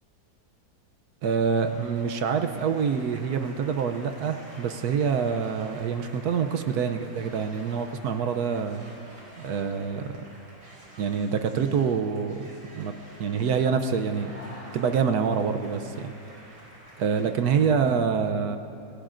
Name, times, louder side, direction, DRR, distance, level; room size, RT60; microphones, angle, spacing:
voice 1, 1.2-8.8 9.4-10.2 11.0-12.4 12.8-12.9 13.2-16.1 17.0-18.6, right 6 dB, 65° right, 7 dB, 1.0 m, -26 dB
sound 1, 1.4-17.6, equal, 85° right, 4.5 m, -49 dB
27.0 x 18.5 x 2.5 m, 2.9 s
omnidirectional pair, 2.1 m